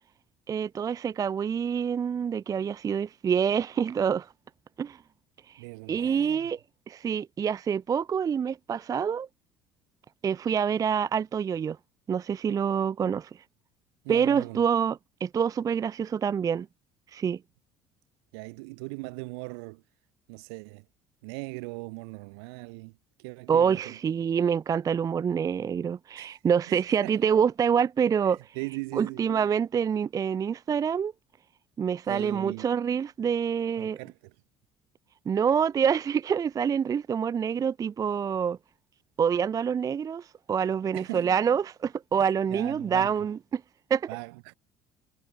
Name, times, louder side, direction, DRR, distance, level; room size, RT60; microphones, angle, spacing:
voice 1, 0.5-4.3 4.8-5.0 5.5-6.6 6.9-9.3 10.2-11.8 12.1-13.3 14.1-16.7 17.1-17.4 23.5-28.6 28.9-31.1 31.8-34.0 35.3-38.6 39.2-43.6 43.9-44.1, right 7 dB, 25° right, 0.4 m, -26 dB
voice 2, 5.6-6.5 14.0-14.6 18.3-19.8 20.3-20.9 21.2-24.0 26.1-26.4 26.7-27.2 28.5-29.3 32.1-32.7 33.8-34.3 40.9-41.4 42.1-43.2 44.1-44.5, right 30 dB, 70° right, 2.6 m, -39 dB
figure-of-eight pair, 60°, 14 cm